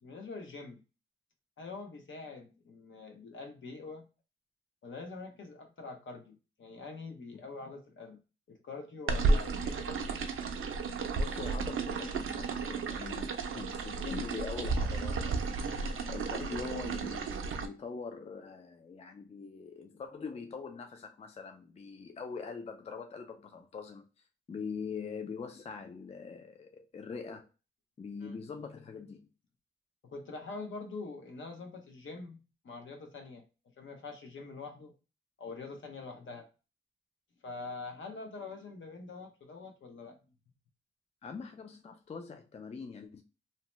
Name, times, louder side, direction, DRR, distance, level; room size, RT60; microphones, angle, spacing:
voice 1, 0.0-0.8 1.6-4.1 4.8-8.2 8.5-10.1 15.5-15.9 28.2-28.4 30.0-33.5 33.8-34.9 35.4-36.5 37.4-40.2, left 3 dB, 70° left, 0.7 m, -45 dB
sound 1, 9.1-17.7, right 4 dB, 80° right, 0.5 m, -33 dB
voice 2, 11.2-24.1 24.5-27.5 28.0-29.3 41.2-43.2, left 5 dB, 30° left, 0.3 m, -43 dB
2.8 x 2.1 x 3.0 m
wide cardioid pair, 130°, 21 cm